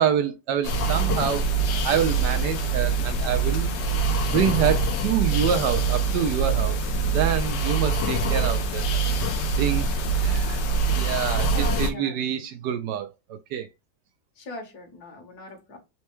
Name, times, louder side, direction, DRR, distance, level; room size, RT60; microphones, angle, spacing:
voice 1, 0.0-1.5 1.8-3.8 4.2-6.8 7.1-8.8 9.6-9.9 10.2-10.6 10.9-13.7, right 9 dB, 75° right, 1.1 m, -26 dB
sound 1, 0.6-11.9, right 3 dB, 75° left, 1.3 m, -24 dB
voice 2, 11.5-12.2 14.4-15.8, left 2 dB, 60° left, 1.5 m, -39 dB
4.3 x 2.2 x 3.0 m
omnidirectional pair, 2.0 m